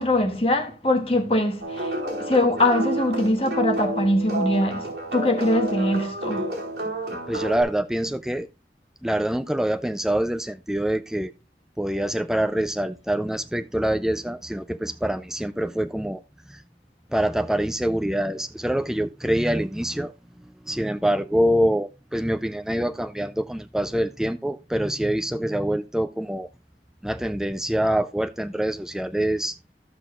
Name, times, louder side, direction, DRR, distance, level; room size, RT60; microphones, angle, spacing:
voice 1, 0.0-6.5, left 1 dB, 35° left, 1.4 m, -23 dB
sound 1, 1.6-7.6, right 2 dB, 65° right, 4.1 m, -29 dB
voice 2, 7.1-8.5 9.0-11.3 11.8-16.2 16.5-16.6 17.1-20.1 20.6-26.5 27.0-29.6, right 1 dB, 5° right, 0.3 m, -25 dB
14.5 x 6.0 x 2.4 m
head